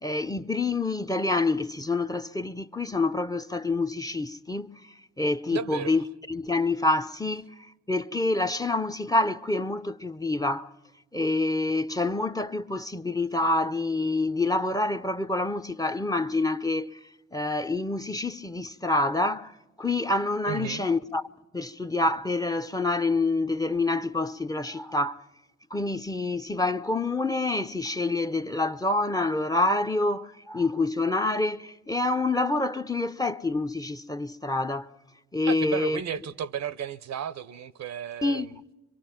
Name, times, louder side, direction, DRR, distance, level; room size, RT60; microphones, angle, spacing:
voice 1, 0.0-7.5 7.9-10.7 11.1-17.0 17.3-19.5 19.8-21.2 21.5-25.2 25.7-34.9 35.3-36.0 38.2-38.6, left 2 dB, 10° left, 0.7 m, -27 dB
voice 2, 5.5-5.9 20.5-20.8 35.4-38.5, right 8 dB, 60° right, 0.7 m, -33 dB
25.0 x 23.0 x 5.8 m
hypercardioid pair, 40°, 31 cm